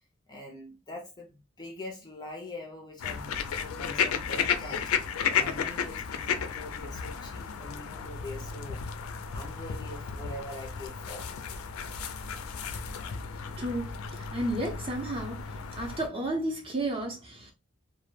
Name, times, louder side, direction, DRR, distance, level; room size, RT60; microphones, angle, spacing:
voice 1, 0.3-4.9 5.3-8.8 9.3-11.3, left 1 dB, 20° left, 0.4 m, -43 dB
sound 1, 3.0-16.1, left 7 dB, 85° left, 0.4 m, -33 dB
voice 2, 13.6-15.4 15.7-17.5, right 1 dB, 25° right, 0.6 m, -32 dB
2.2 x 2.1 x 3.1 m
head